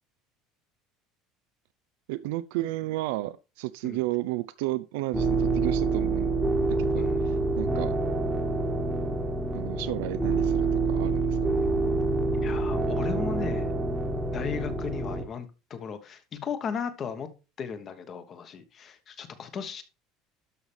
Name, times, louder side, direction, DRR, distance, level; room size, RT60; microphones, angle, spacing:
voice 1, 2.1-6.3 6.8-8.0 9.5-11.5, right 17 dB, 90° right, 0.5 m, -33 dB
sound 1, 5.1-15.2, right 3 dB, ahead, 1.3 m, -27 dB
voice 2, 12.4-13.7 14.3-17.3 17.6-19.8, left 6 dB, 25° left, 1.2 m, -36 dB
12.5 x 5.7 x 3.4 m
cardioid pair, 180°, 0 cm